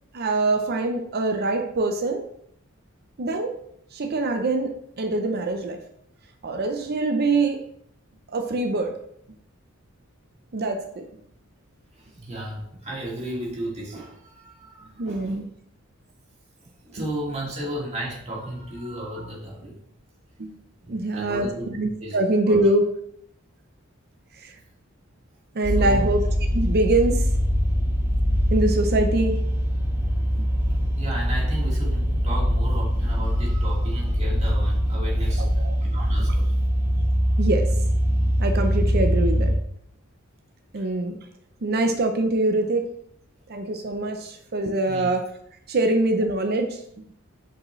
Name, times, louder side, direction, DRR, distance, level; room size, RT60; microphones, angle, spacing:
voice 1, 0.1-2.3 3.2-3.6 3.9-5.8 6.4-7.6 8.3-9.0 10.5-11.1 15.0-15.5 17.0-17.1 19.2-19.3 20.4-20.6 20.9-22.9 24.3-24.6 25.5-26.3 26.5-27.3 28.5-29.4 30.4-30.5 35.4-35.8 36.2-36.3 37.4-37.7 38.4-39.5 40.7-41.2 41.6-42.9 43.5-45.3 45.7-47.1, right 2 dB, 50° right, 5 dB, 0.6 m, -24 dB
voice 2, 12.0-15.3 16.8-19.7 20.8-21.7 22.0-22.2 22.5-22.6 25.8-26.1 31.0-35.4 35.8-36.5 44.9-45.1, right 1 dB, 30° right, -4 dB, 2.2 m, -34 dB
sound 1, 25.6-39.6, equal, 10° right, 1.3 m, -22 dB
7.5 x 5.1 x 3.1 m, 0.70 s
head